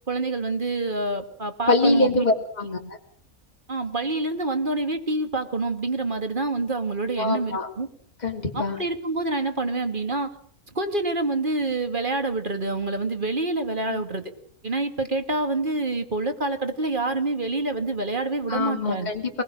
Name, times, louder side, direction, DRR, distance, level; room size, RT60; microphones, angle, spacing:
voice 1, 0.1-2.2 3.7-7.9 8.5-10.3 10.7-14.2 14.6-19.1, right 2 dB, 35° right, 7 dB, 2.2 m, -27 dB
voice 2, 1.7-2.8 7.2-7.7 8.2-8.8 13.9-14.0 18.5-19.4, left 2 dB, 30° left, 1 dB, 2.9 m, -24 dB
24.0 x 20.5 x 6.3 m, 0.62 s
omnidirectional pair, 1.6 m